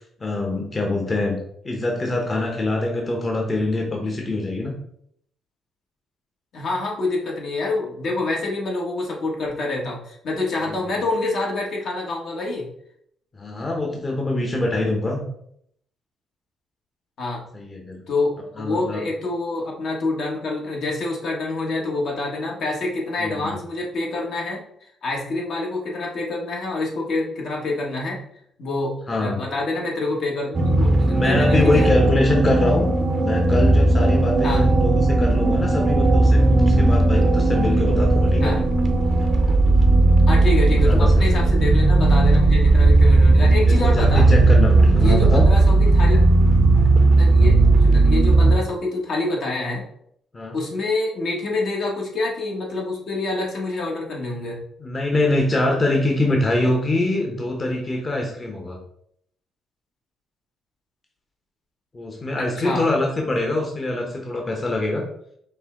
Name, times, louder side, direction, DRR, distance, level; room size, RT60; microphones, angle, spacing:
voice 1, 0.2-1.4 1.6-4.7 10.7-10.9 13.3-15.2 17.5-18.0 18.6-19.0 23.2-23.5 29.1-29.4 31.0-32.9 33.1-38.5 40.7-41.6 42.8-42.9 43.3-45.5 47.3-47.6 50.3-50.6 54.8-58.8 61.9-65.0, left 2 dB, 30° left, 1 dB, 0.9 m, -24 dB
voice 2, 6.5-12.7 17.2-17.4 18.1-24.6 25.0-28.2 28.6-31.9 34.4-34.7 38.4-38.6 40.3-44.3 44.9-46.3 47.2-49.8 50.5-54.6 62.4-62.9, left 2 dB, 65° left, -2 dB, 1.3 m, -26 dB
sound 1, 30.5-48.5, right 2 dB, 40° right, 0.6 m, -16 dB
5.3 x 2.2 x 3.7 m, 0.69 s
cardioid pair, 90°, 0 cm